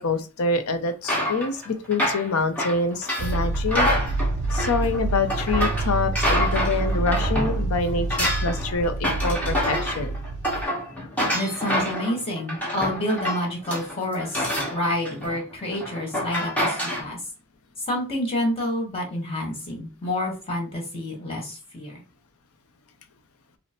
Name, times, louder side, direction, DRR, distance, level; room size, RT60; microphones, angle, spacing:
voice 1, 0.0-3.9 4.5-10.2, left 3 dB, 80° left, 8 dB, 0.5 m, -26 dB
sound 1, 1.0-7.6 7.9-17.0, equal, 5° left, 1.2 m, -27 dB
sound 2, 3.2-10.6, right 2 dB, 55° right, 0.4 m, -27 dB
voice 2, 11.3-14.4 14.7-17.2 17.9-22.0, left 1 dB, 25° left, -1 dB, 1.5 m, -28 dB
5.5 x 2.0 x 3.0 m, 0.32 s
head